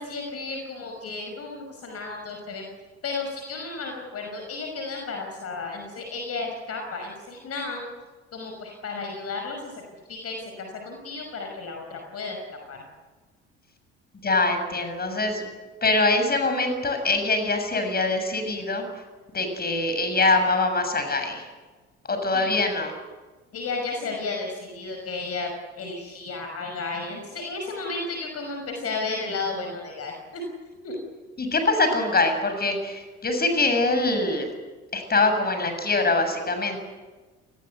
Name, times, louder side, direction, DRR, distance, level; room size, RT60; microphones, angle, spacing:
voice 1, 0.0-2.6 3.0-7.9 8.3-9.8 10.1-12.4 12.7-12.8 22.3-22.6 23.5-25.5 25.8-30.4 30.8-30.9, left 3 dB, 45° left, 3 dB, 5.7 m, -33 dB
voice 2, 14.2-15.5 15.8-18.8 19.3-21.5 22.1-22.9 31.4-34.5 34.9-36.8, left 3 dB, 25° left, 7 dB, 7.2 m, -23 dB
29.0 x 19.5 x 8.2 m, 1.3 s
figure-of-eight pair, 55°, 35 cm